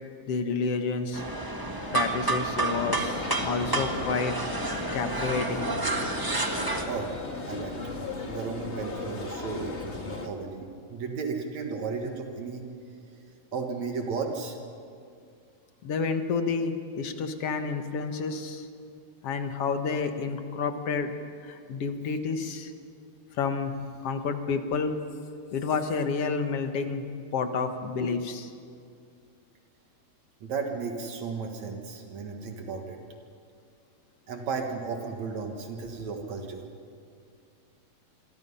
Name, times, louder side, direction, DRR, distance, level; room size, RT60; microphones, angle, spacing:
voice 1, 0.3-1.2 1.9-4.3 4.9-5.7 15.8-18.7 19.2-21.1 21.4-22.7 23.4-23.8 24.0-24.9 25.5-27.1 27.3-28.5, left 5 dB, 60° left, 7 dB, 2.2 m, -29 dB
sound 1, 1.1-6.8, right 2 dB, 15° right, 0.7 m, -30 dB
sound 2, 2.6-10.3, left 2 dB, 25° left, 1.7 m, -36 dB
voice 2, 6.8-7.2 7.5-7.8 8.3-12.7 13.5-14.6 30.4-33.0 34.3-36.6, right 5 dB, 70° right, 3 dB, 3.0 m, -34 dB
27.5 x 23.0 x 5.6 m, 2.4 s
omnidirectional pair, 3.3 m